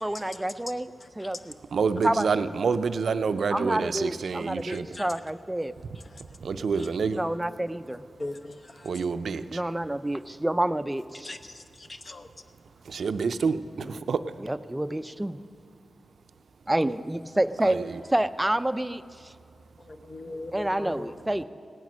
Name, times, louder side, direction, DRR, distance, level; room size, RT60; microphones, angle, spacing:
voice 1, 0.0-1.5 2.0-2.3 3.5-5.7 7.1-8.0 9.5-11.3 13.8-14.0 14.4-15.4 16.7-17.8 18.1-19.0 20.5-21.4, right 1 dB, 15° right, 12 dB, 0.4 m, -28 dB
voice 2, 1.7-4.9 6.4-7.2 8.8-9.6 12.9-14.2 17.6-17.8, right 5 dB, 80° right, 11 dB, 0.5 m, -27 dB
voice 3, 4.7-5.1 8.2-8.6 11.2-11.4 12.1-12.3 19.9-21.1, left 2 dB, 45° left, 9 dB, 0.9 m, -38 dB
17.0 x 9.3 x 6.1 m, 2.4 s
cardioid pair, 70°, 0 cm